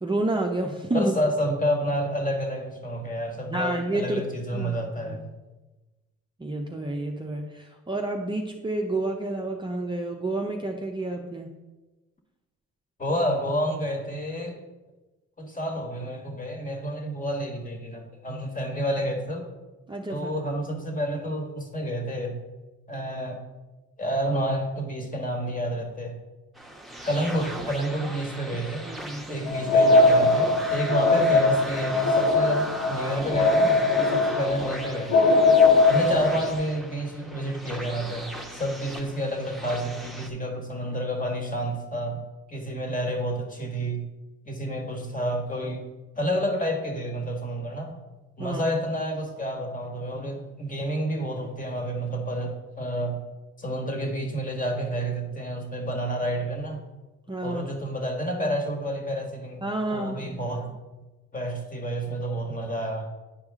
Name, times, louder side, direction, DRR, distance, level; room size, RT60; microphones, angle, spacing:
voice 1, 0.0-1.2 3.5-4.2 4.5-5.2 6.4-11.5 19.9-20.3 28.9-29.5 48.4-48.6 57.3-57.7 59.6-60.5, right 2 dB, 15° right, 1 dB, 0.7 m, -29 dB
voice 2, 0.9-5.2 13.0-14.6 15.4-19.4 20.1-22.4 22.9-23.4 24.0-26.2 27.0-28.8 29.3-35.2 35.9-42.2 42.5-44.0 44.5-45.8 46.2-47.9 48.4-53.2 53.6-56.8 57.4-59.6 59.9-60.8 61.3-63.1, equal, 25° left, 2 dB, 1.7 m, -29 dB
sound 1, 26.5-40.3, right 1 dB, ahead, 1.0 m, -37 dB
sound 2, 29.5-36.5, left 3 dB, 60° left, 1.2 m, -20 dB
9.8 x 4.8 x 3.7 m, 1.1 s
cardioid pair, 90°, 30 cm